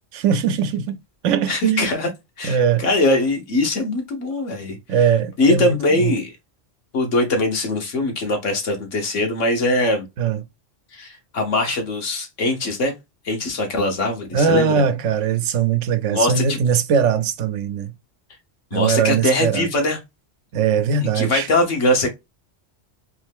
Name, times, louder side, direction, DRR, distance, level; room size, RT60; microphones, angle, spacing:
voice 1, 0.1-1.0 1.2-1.9 2.4-2.8 4.9-6.1 10.2-10.4 14.3-17.9 18.7-19.7 20.5-21.5, right 7 dB, 85° right, 0.9 m, -20 dB
voice 2, 1.5-2.1 2.4-4.8 5.4-6.3 6.9-10.1 10.9-12.9 13.2-14.8 16.1-16.6 18.7-20.0 21.1-22.1, left 2 dB, 80° left, 1.6 m, -21 dB
3.6 x 3.2 x 3.4 m
omnidirectional pair, 1.2 m